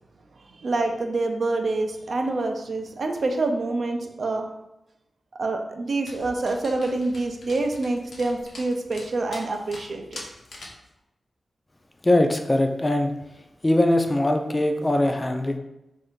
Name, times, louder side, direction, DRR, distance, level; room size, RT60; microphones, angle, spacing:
voice 1, 0.6-4.5 5.4-10.2, right 2 dB, 65° right, 4 dB, 0.4 m, -26 dB
Dog, 6.1-10.9, left 2 dB, 75° left, 0.6 m, -44 dB
voice 2, 12.0-13.1 13.6-15.6, left 1 dB, 25° left, 4 dB, 0.3 m, -21 dB
2.6 x 2.5 x 3.5 m, 0.89 s
wide cardioid pair, 85°, 0 cm